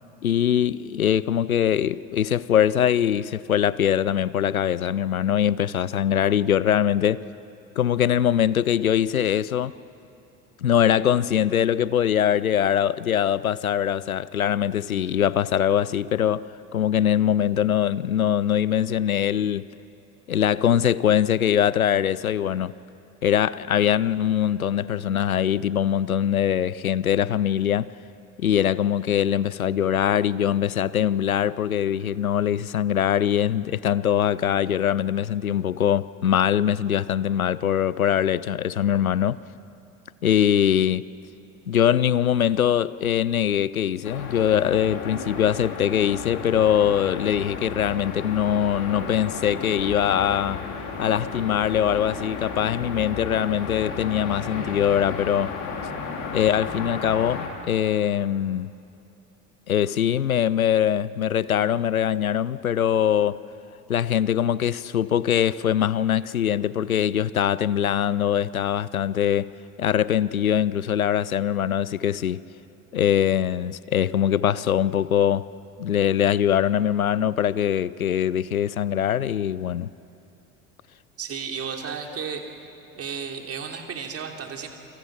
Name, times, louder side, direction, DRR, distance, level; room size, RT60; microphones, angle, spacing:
voice 1, 0.2-7.2 7.8-9.7 10.6-16.4 16.7-19.7 20.3-22.7 23.2-27.9 28.4-39.4 40.2-41.1 41.7-50.6 51.0-55.6 56.3-58.7 59.7-63.4 63.9-69.5 69.8-72.4 72.9-75.5 75.8-79.9, left 9 dB, 85° left, 0.5 m, -22 dB
sound 1, 44.0-57.5, left 5 dB, 55° left, 3.8 m, -33 dB
voice 2, 81.2-82.4 82.9-84.7, right 6 dB, 35° right, 3.1 m, -33 dB
28.5 x 25.0 x 6.2 m
figure-of-eight pair, 65°, 41 cm